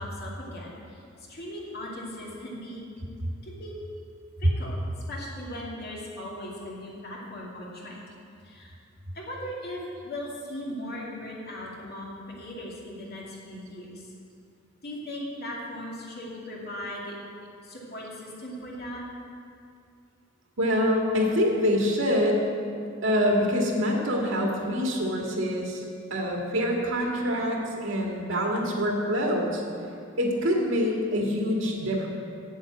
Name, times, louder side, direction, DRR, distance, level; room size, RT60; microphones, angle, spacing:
voice 1, 0.0-2.8 3.4-3.8 4.4-4.8 5.1-8.0 8.4-8.7 9.1-12.1 12.4-14.1 14.8-17.2 17.6-19.0, left 1 dB, 55° left, -4 dB, 2.5 m, -38 dB
voice 2, 20.6-22.5 23.0-25.8 26.1-29.6 30.2-32.1, equal, 70° right, -1 dB, 2.0 m, -25 dB
8.3 x 8.1 x 8.4 m, 2.4 s
head